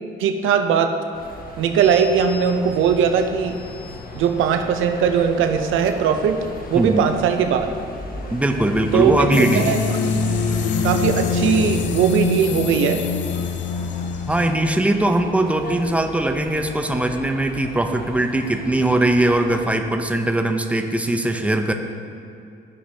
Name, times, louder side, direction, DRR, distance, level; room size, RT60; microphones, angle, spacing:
voice 1, 0.2-1.0 1.6-3.6 4.1-6.4 6.7-7.7 8.9-9.2 9.5-10.2 10.8-13.0, right 7 dB, 85° right, 7 dB, 0.6 m, -19 dB
sound 1, 1.1-19.7, left 2 dB, 45° left, 1.2 m, -37 dB
voice 2, 8.3-9.7 14.3-21.7, right 1 dB, 5° right, 5 dB, 0.6 m, -20 dB
sound 2, 9.3-14.5, left 5 dB, 65° left, 0.5 m, -24 dB
14.5 x 5.0 x 2.8 m, 2.5 s
cardioid pair, 90°, 20 cm